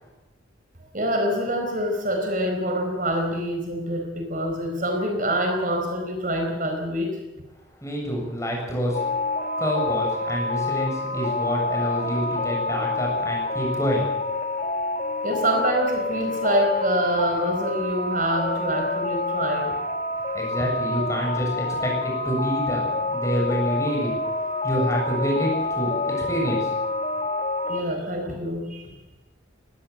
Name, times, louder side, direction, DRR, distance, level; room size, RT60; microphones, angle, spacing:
voice 1, 0.9-7.2 15.2-19.8 27.7-29.0, equal, 40° right, 3 dB, 4.4 m, -26 dB
voice 2, 7.8-9.0 9.6-14.1 20.3-24.1 24.6-26.8 27.1-27.2, equal, 15° left, -1 dB, 7.4 m, -27 dB
sound 1, 8.9-27.8, left 3 dB, 40° left, 1.4 m, -27 dB
20.5 x 17.0 x 7.9 m, 1.1 s
head